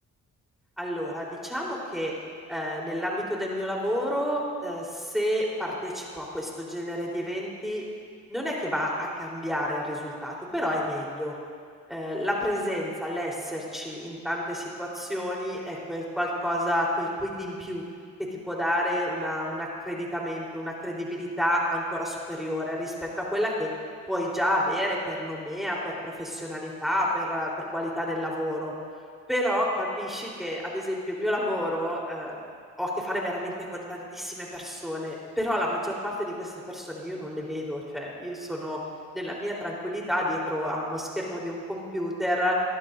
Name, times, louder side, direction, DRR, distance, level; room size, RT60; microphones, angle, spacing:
voice 1, 0.8-2.1 2.5-7.8 8.3-11.3 11.9-17.8 18.5-23.7 24.1-28.7 29.3-32.4 32.8-38.8 39.1-42.6, equal, ahead, -3 dB, 3.9 m, -30 dB
22.5 x 12.0 x 2.7 m, 2.1 s
supercardioid pair, 60°, 32 cm